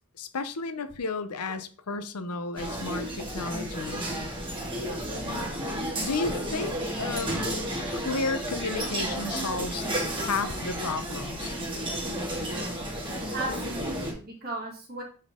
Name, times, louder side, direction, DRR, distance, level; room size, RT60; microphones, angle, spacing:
voice 1, 0.2-4.1 6.0-9.9 10.2-11.6, left 4 dB, 90° left, 11 dB, 0.8 m, -33 dB
sound 1, 2.6-14.1, equal, 20° right, 2.3 m, -32 dB
voice 2, 13.3-15.0, right 2 dB, 45° right, -2 dB, 2.7 m, -36 dB
8.5 x 4.4 x 3.7 m, 0.39 s
head